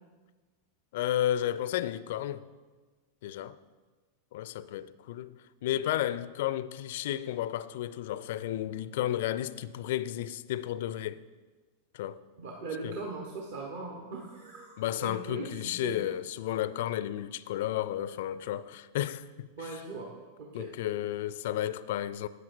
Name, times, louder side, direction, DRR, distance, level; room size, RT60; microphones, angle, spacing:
voice 1, 0.9-2.4 3.2-3.6 4.3-5.4 5.6-11.2 11.9-12.2 12.8-12.9 14.8-19.7 20.5-22.3, left 12 dB, 55° left, 0.4 m, -32 dB
voice 2, 12.4-16.0 19.6-20.1 20.4-20.7, right 3 dB, 55° right, 1.1 m, -40 dB
13.0 x 9.3 x 2.6 m
figure-of-eight pair, 90°, 0 cm